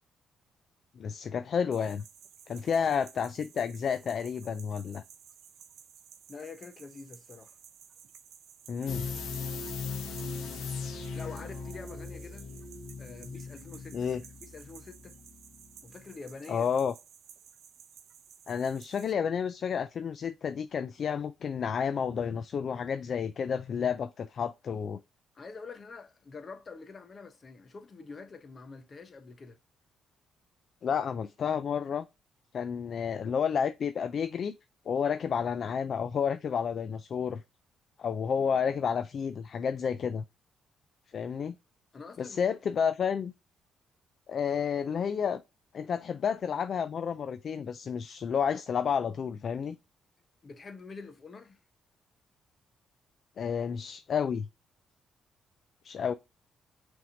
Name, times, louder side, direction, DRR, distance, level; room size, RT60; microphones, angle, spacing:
voice 1, 1.0-2.0 2.5-5.0 8.7-9.1 13.9-14.2 16.5-16.9 18.5-25.0 30.8-32.1 32.5-34.5 34.9-37.4 38.0-40.2 41.1-41.6 42.2-43.3 44.3-45.4 45.7-49.8 53.4-54.5 55.8-56.1, left 7 dB, 55° left, 0.3 m, -30 dB
sound 1, 1.7-19.1, right 8 dB, 75° right, 0.7 m, -55 dB
voice 2, 6.3-7.5 11.1-12.5 13.0-14.1 14.4-15.2 15.8-16.7 25.3-29.6 41.9-42.4 42.8-42.9 50.4-51.6, left 4 dB, 40° left, 0.9 m, -46 dB
sound 2, 8.9-15.7 16.0-16.1, left 4 dB, 75° left, 0.9 m, -39 dB
5.7 x 3.6 x 2.6 m
cardioid pair, 90°, 0 cm